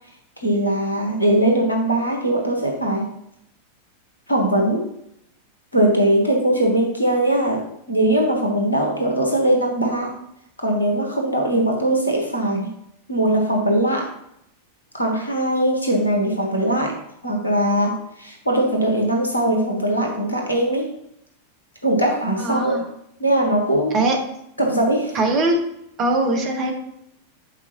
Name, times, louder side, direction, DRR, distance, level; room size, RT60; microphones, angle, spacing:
voice 1, 0.4-3.1 4.3-4.9 5.7-7.6 7.9-10.1 10.6-12.7 13.1-14.1 14.9-16.9 17.2-20.9 21.8-22.8 23.2-23.9 24.6-25.2, right 1 dB, 85° left, 0 dB, 1.3 m, -20 dB
voice 2, 22.4-22.8 23.9-24.2 25.1-25.6 26.0-26.7, right 2 dB, 35° right, 3 dB, 1.2 m, -20 dB
8.0 x 4.4 x 3.0 m, 0.77 s
figure-of-eight pair, 90°, 0 cm